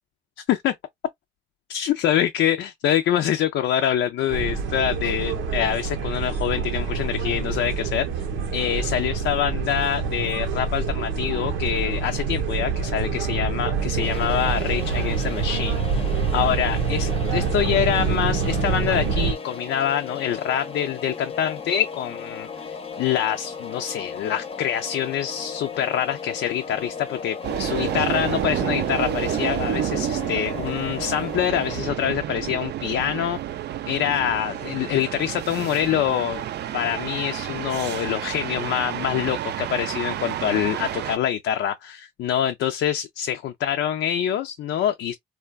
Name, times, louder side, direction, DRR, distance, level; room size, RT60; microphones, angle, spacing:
voice 1, 1.7-8.3 8.5-33.4 33.9-36.4 36.7-45.1, left 10 dB, 70° left, 0.4 m, -25 dB
sound 1, 4.3-19.3, right 5 dB, 90° right, 0.8 m, -26 dB
sound 2, 14.0-31.8, left 5 dB, 30° left, 0.6 m, -36 dB
sound 3, 27.4-41.2, right 11 dB, 60° right, 0.4 m, -29 dB
3.2 x 2.2 x 2.2 m
cardioid pair, 90°, 20 cm